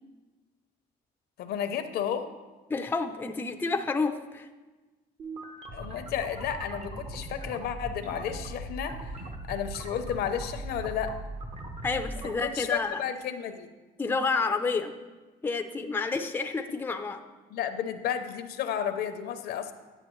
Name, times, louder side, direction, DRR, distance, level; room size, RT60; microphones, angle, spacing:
voice 1, 1.4-2.3 5.7-9.1 9.5-11.2 12.4-13.7 17.5-19.7, left 8 dB, 70° left, 8 dB, 0.7 m, -32 dB
voice 2, 2.7-4.5 11.8-13.0 14.0-14.9 15.4-17.2, left 4 dB, 10° left, 6 dB, 0.5 m, -29 dB
sound 1, 5.2-12.3, right 1 dB, 40° right, 1.0 m, -39 dB
9.7 x 7.7 x 3.1 m, 1.2 s
cardioid pair, 110°, 17 cm